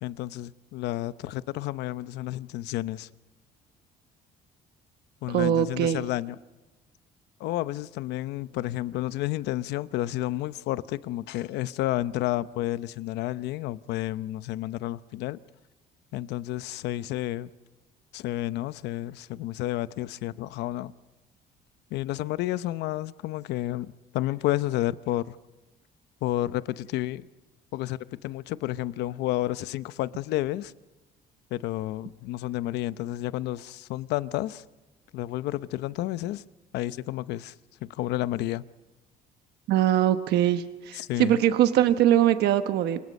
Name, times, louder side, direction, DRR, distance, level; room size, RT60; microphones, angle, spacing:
voice 1, 0.0-3.1 5.2-6.4 7.4-15.4 16.1-17.5 18.1-20.9 21.9-25.4 26.2-27.3 27.7-30.7 31.5-34.6 35.1-36.4 36.7-37.5 37.8-38.6 40.9-41.4, left 15 dB, 85° left, 0.8 m, -31 dB
voice 2, 5.3-6.1 39.7-43.0, right 11 dB, 75° right, 1.1 m, -22 dB
27.5 x 24.5 x 5.4 m
cardioid pair, 110°, 17 cm